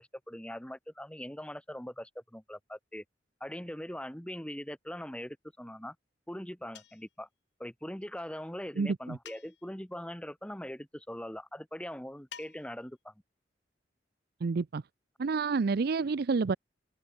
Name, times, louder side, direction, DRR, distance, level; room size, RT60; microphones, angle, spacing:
voice 1, 0.0-3.0 3.4-5.9 6.3-7.3 7.6-13.1, equal, 5° left, 1.4 m, -41 dB
sound 1, 6.7-7.2 9.2-9.8 12.3-12.9, left 8 dB, 65° left, 4.6 m, -50 dB
voice 2, 8.8-9.2 14.4-14.8 15.2-16.6, right 4 dB, 55° right, 0.5 m, -29 dB
head